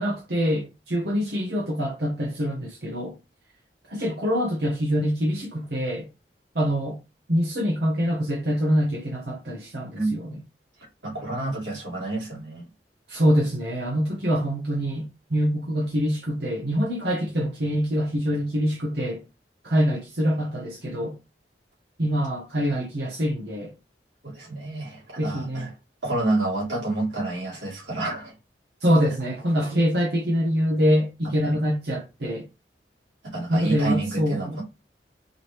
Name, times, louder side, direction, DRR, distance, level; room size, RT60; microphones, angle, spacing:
voice 1, 0.0-3.1 3.9-6.1 6.5-7.0 7.3-10.4 13.1-19.2 19.6-21.2 22.0-23.7 25.2-25.7 28.8-32.5 33.5-34.6, equal, 65° right, 1.1 m, -25 dB
voice 2, 9.9-10.2 11.0-12.6 24.2-25.7 26.0-28.3 31.4-31.6 33.2-34.6, right 2 dB, 85° right, 3.0 m, -29 dB
4.8 x 3.3 x 3.1 m
head